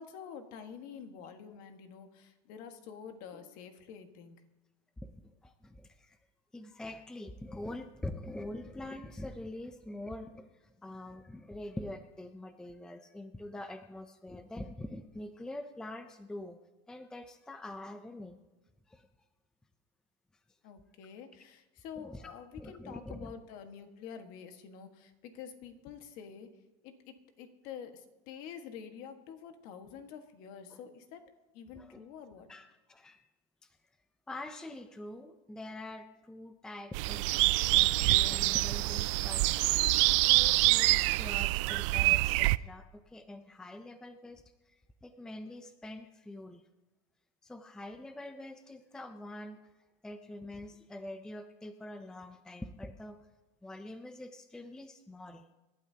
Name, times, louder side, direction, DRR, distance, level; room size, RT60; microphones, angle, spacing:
voice 1, 0.0-4.4 20.6-26.5 26.8-31.2 31.5-32.5, left 7 dB, 50° left, 6 dB, 1.6 m, -48 dB
voice 2, 5.0-6.2 6.5-16.6 16.9-18.4 18.9-19.1 22.0-22.3 22.6-23.3 30.7-30.8 31.7-32.0 32.5-33.2 33.6-33.8 34.3-39.5 40.2-46.6 47.4-49.6 50.0-53.2 53.6-55.5, left 1 dB, 5° left, 8 dB, 0.5 m, -45 dB
sound 1, 36.9-42.6, right 20 dB, 60° right, 0.4 m, -26 dB
26.5 x 12.0 x 2.8 m, 1.1 s
supercardioid pair, 160°, 18 cm